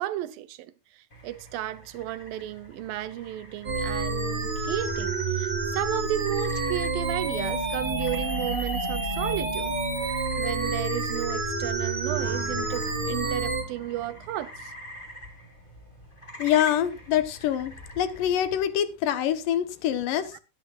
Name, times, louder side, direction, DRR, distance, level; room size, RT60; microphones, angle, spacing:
voice 1, 0.0-9.8 10.4-14.7 20.3-20.4, right 14 dB, 90° right, 2.6 m, -33 dB
sound 1, 1.1-18.7, left 1 dB, 15° left, 2.4 m, -47 dB
sound 2, 3.6-13.6, right 3 dB, 30° right, 0.9 m, -29 dB
sound 3, 12.1-15.0, right 3 dB, 45° right, 3.5 m, -44 dB
voice 2, 16.4-20.3, left 10 dB, 75° left, 2.6 m, -25 dB
21.0 x 10.5 x 2.4 m
omnidirectional pair, 3.9 m